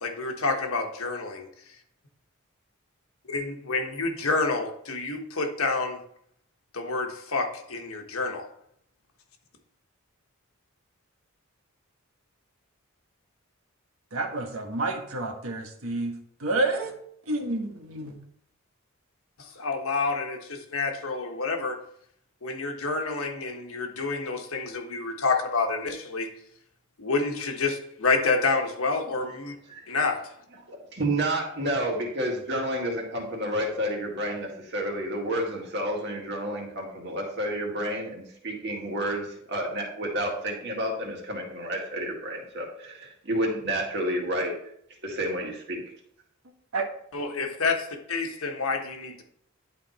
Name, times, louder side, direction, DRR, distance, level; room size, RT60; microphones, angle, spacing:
voice 1, 0.0-1.5 3.3-6.0 6.7-8.4 19.4-21.8 22.4-26.3 27.0-29.6 29.9-30.2 47.1-49.2, left 3 dB, 80° left, 3 dB, 1.3 m, -28 dB
voice 2, 14.1-16.1 16.4-16.9 17.3-18.2 46.7-46.9, right 2 dB, 85° right, 2 dB, 1.4 m, -29 dB
voice 3, 30.7-44.5 45.0-45.8, right 1 dB, 50° right, 0 dB, 2.0 m, -30 dB
11.0 x 4.2 x 4.2 m, 0.68 s
head